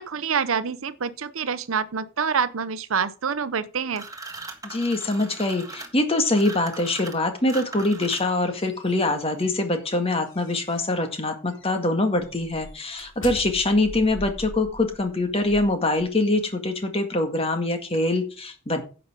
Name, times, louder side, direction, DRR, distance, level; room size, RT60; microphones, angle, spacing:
voice 1, 0.0-4.0, right 6 dB, 75° right, 0.7 m, -26 dB
sound 1, 3.9-8.5, right 3 dB, 15° right, 1.6 m, -39 dB
voice 2, 4.6-18.8, left 2 dB, 30° left, 1.8 m, -24 dB
sound 2, 8.3-11.0 11.5-11.7 12.2-16.4, equal, 60° left, 3.3 m, -42 dB
10.5 x 6.9 x 5.1 m
head